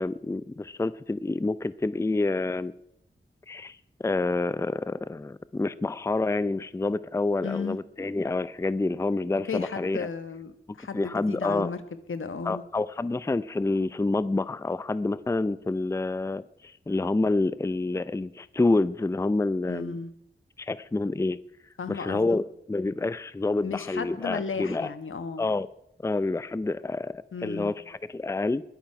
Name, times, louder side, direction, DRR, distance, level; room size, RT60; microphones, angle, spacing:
voice 1, 0.0-2.7 3.5-10.1 10.9-11.7 12.5-20.0 20.6-21.4 21.9-24.9 25.4-25.7 26.0-28.6, left 2 dB, 15° left, 17 dB, 0.4 m, -28 dB
voice 2, 7.4-7.8 9.5-11.8 12.1-12.6 19.7-20.1 21.8-22.4 23.6-25.4 27.3-27.7, left 5 dB, 80° left, 10 dB, 1.2 m, -34 dB
21.0 x 9.0 x 5.8 m, 0.80 s
wide cardioid pair, 70°, 20 cm